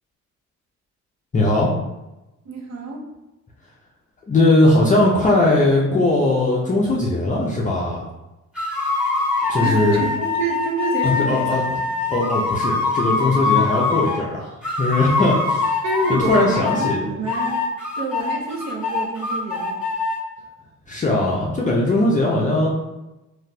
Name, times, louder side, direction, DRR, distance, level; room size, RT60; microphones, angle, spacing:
voice 1, 1.3-1.7 4.3-8.0 9.5-10.0 11.0-11.6 12.1-15.8 16.1-17.1 20.9-22.7, left 2 dB, 25° left, -4 dB, 0.5 m, -19 dB
voice 2, 2.5-3.1 9.6-11.7 15.8-17.6 18.0-19.8 22.4-22.5, right 2 dB, 60° right, 0 dB, 0.8 m, -28 dB
sound 1, 8.5-14.2 14.6-17.0 17.3-20.2, left 4 dB, 5° right, 1.4 m, -23 dB
3.8 x 2.5 x 2.2 m, 1.0 s
cardioid pair, 90°, 30 cm